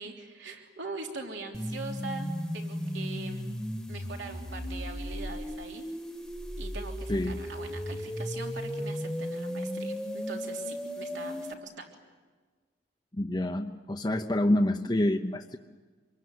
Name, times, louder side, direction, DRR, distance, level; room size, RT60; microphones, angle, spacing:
voice 1, 0.0-3.5 3.9-5.8 6.6-11.9, right 3 dB, 70° right, 2 dB, 3.3 m, -42 dB
sound 1, 1.5-11.5, equal, 5° left, 1.5 m, -35 dB
voice 2, 7.1-7.4 13.1-15.6, left 1 dB, 20° left, 3 dB, 0.8 m, -27 dB
27.0 x 22.0 x 9.6 m, 1.4 s
head